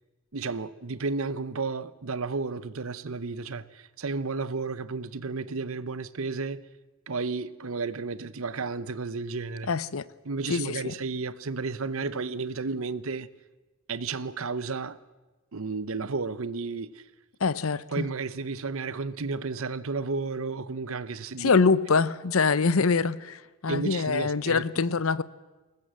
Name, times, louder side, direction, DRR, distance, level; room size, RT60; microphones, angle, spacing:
voice 1, 0.3-6.6 7.1-9.7 10.2-13.3 13.9-15.0 15.5-17.0 17.9-21.5 23.7-24.6, right 4 dB, 70° right, 0.8 m, -32 dB
voice 2, 9.7-10.0 10.5-10.9 17.4-18.1 21.4-25.2, left 4 dB, 70° left, 0.7 m, -24 dB
22.0 x 19.0 x 7.6 m
head